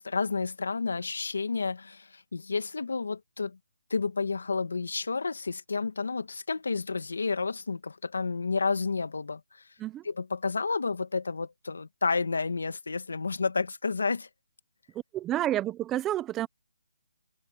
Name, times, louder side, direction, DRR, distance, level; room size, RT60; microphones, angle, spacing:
voice 1, 0.0-3.6 3.9-9.6 10.0-14.3, left 4 dB, 80° left, 1.9 m, -30 dB
voice 2, 15.1-16.5, right 13 dB, 10° right, 0.6 m, -29 dB
hypercardioid pair, 170°, 0 cm